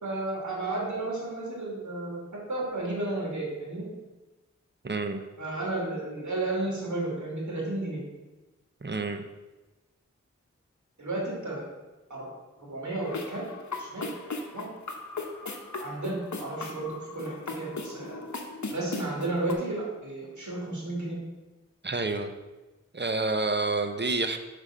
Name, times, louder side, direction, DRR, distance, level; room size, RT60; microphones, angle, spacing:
voice 1, 0.0-3.9 5.4-8.0 11.0-11.6 12.1-12.2 12.6-13.4 13.8-14.1 14.5-14.7 15.8-18.3 18.7-21.2, right 2 dB, 75° right, -3 dB, 2.6 m, -33 dB
voice 2, 4.8-5.2 8.8-9.2 21.8-22.3 22.9-24.4, right 3 dB, 35° right, 7 dB, 0.8 m, -28 dB
sound 1, 13.0-19.5, left 3 dB, 70° left, 1.0 m, -38 dB
5.7 x 5.0 x 6.4 m, 1.1 s
wide cardioid pair, 45°, 29 cm